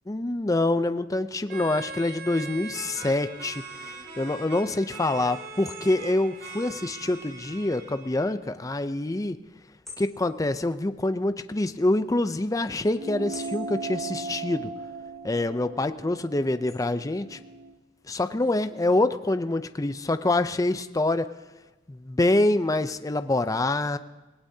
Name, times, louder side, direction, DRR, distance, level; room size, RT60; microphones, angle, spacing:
voice 1, 0.1-9.4 10.0-14.7 15.2-17.4 18.1-21.3 21.9-24.0, left 2 dB, 20° left, 10 dB, 0.5 m, -26 dB
sound 1, 1.5-8.3, right 4 dB, 60° right, 2.6 m, -41 dB
sound 2, 2.5-17.1, left 2 dB, ahead, 7.7 m, -54 dB
sound 3, 13.0-17.8, right 4 dB, 40° right, 1.1 m, -38 dB
27.0 x 18.0 x 2.8 m, 1.1 s
head